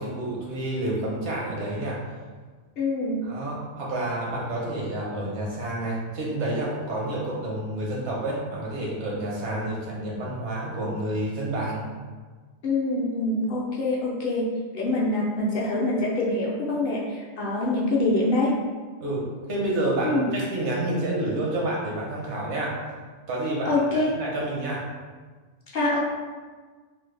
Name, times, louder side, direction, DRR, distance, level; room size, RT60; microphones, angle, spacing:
voice 1, 0.0-2.0 3.2-11.9 19.0-22.8 23.3-23.8 24.1-24.8, right 1 dB, 75° right, -4 dB, 1.1 m, -29 dB
voice 2, 2.8-3.2 12.6-14.5 14.7-18.5 20.0-20.3 23.6-24.1 25.7-26.0, left 2 dB, 60° left, -5 dB, 0.7 m, -25 dB
3.2 x 2.0 x 3.2 m, 1.4 s
omnidirectional pair, 1.2 m